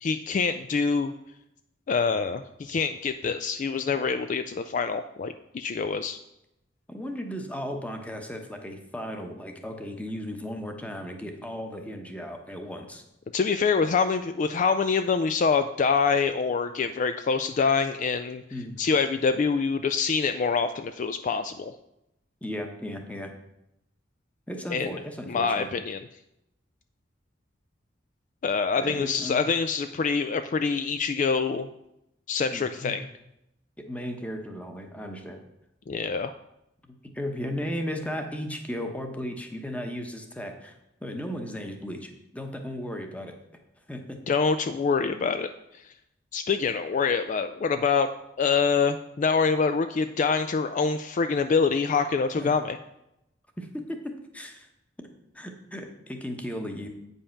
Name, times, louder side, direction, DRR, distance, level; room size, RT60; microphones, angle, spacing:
voice 1, 0.0-1.1 1.9-6.2 13.3-18.4 18.8-21.7 24.7-24.9 25.3-26.0 28.4-31.7 32.3-33.1 35.9-36.3 44.3-45.5 46.3-48.1 48.4-52.8, left 5 dB, 45° left, 9 dB, 0.3 m, -25 dB
voice 2, 6.9-13.0 18.5-18.8 22.4-23.3 24.5-25.7 28.8-29.4 32.5-33.0 33.8-35.4 37.1-43.3 43.9-44.2 52.4-52.6 53.6-54.7 55.3-56.9, equal, 10° left, 4 dB, 1.0 m, -35 dB
8.5 x 5.5 x 5.7 m, 0.85 s
head